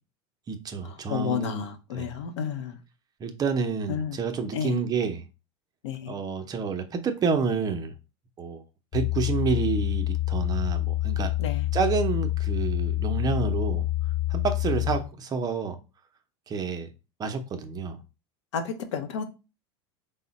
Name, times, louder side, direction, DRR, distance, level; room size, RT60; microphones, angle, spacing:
voice 1, 0.5-1.7 1.9-2.1 3.2-5.2 6.1-7.9 8.4-8.6 8.9-11.3 11.7-13.9 14.3-15.8 16.5-16.9 17.2-18.0, right 5 dB, 25° right, 0.6 m, -29 dB
voice 2, 1.1-2.8 3.9-4.2 4.5-4.8 5.8-6.1 11.4-11.7 18.5-19.2, left 8 dB, 80° left, 0.7 m, -31 dB
sound 1, 8.9-15.0, left 16 dB, 30° left, 0.4 m, -27 dB
3.6 x 2.1 x 3.9 m
supercardioid pair, 110°, 15 cm